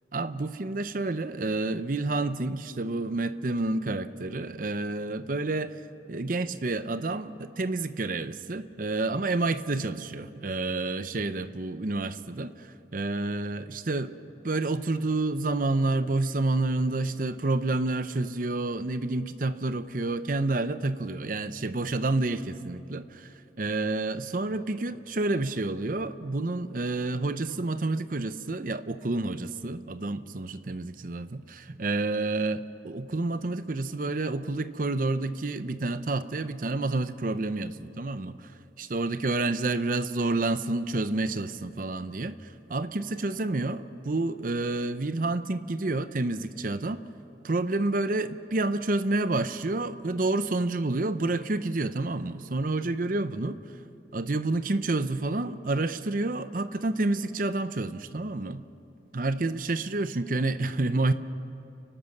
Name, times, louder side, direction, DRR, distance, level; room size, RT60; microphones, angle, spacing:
voice 1, 0.1-5.7 6.1-14.2 14.4-38.5 38.8-47.0 47.4-53.6 54.1-58.6 59.1-61.1, right 2 dB, 50° right, 12 dB, 0.7 m, -29 dB
30.0 x 12.5 x 7.2 m, 2.8 s
head